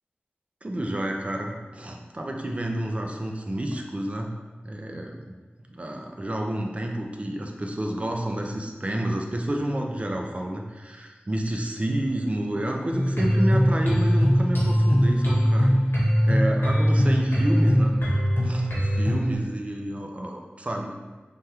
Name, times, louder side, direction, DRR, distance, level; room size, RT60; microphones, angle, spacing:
voice 1, 0.6-4.3 4.6-5.3 5.7-15.7 16.2-17.9 18.4-20.9, right 1 dB, 35° right, 1 dB, 0.4 m, -29 dB
sound 1, 12.9-19.3, equal, 70° left, 0.9 m, -21 dB
3.3 x 2.2 x 2.9 m, 1.3 s
wide cardioid pair, 70°, 4 cm